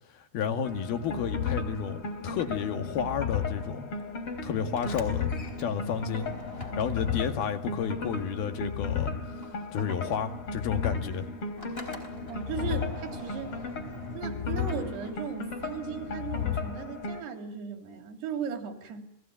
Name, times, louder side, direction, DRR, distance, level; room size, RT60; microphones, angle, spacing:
voice 1, 0.3-2.0 2.2-3.9 4.4-5.3 5.6-6.3 6.8-9.1 9.7-11.3, left 7 dB, 70° left, 7 dB, 3.8 m, -31 dB
sound 1, 0.6-17.2, left 5 dB, 35° left, 4.1 m, -34 dB
Sliding door, 4.6-8.9 9.2-15.6, left 2 dB, 15° left, 3.7 m, -46 dB
voice 2, 12.3-13.7 14.2-19.1, right 7 dB, 90° right, 5 dB, 5.3 m, -37 dB
30.0 x 21.0 x 9.3 m, 0.75 s
omnidirectional pair, 4.6 m